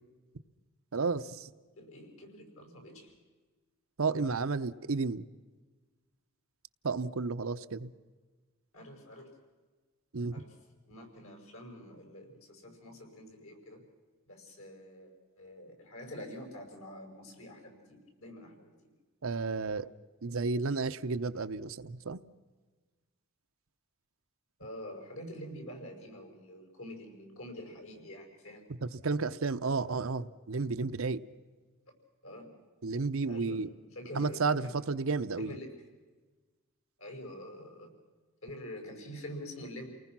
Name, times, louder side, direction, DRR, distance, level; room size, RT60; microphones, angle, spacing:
voice 1, 0.9-1.5 4.0-5.2 6.8-7.9 10.1-10.4 19.2-19.9 20.2-22.2 28.8-31.2 32.8-33.7 34.2-35.5, right 4 dB, 65° right, 11 dB, 0.7 m, -32 dB
voice 2, 1.8-3.1 4.0-4.1 8.7-9.3 10.3-10.6 10.8-13.8 14.3-18.9 24.6-28.7 32.2-32.5 33.2-33.7 33.9-34.7 35.4-35.7 37.0-37.9 38.4-39.9, equal, 65° left, 3 dB, 5.7 m, -46 dB
29.5 x 19.5 x 6.0 m, 1.4 s
head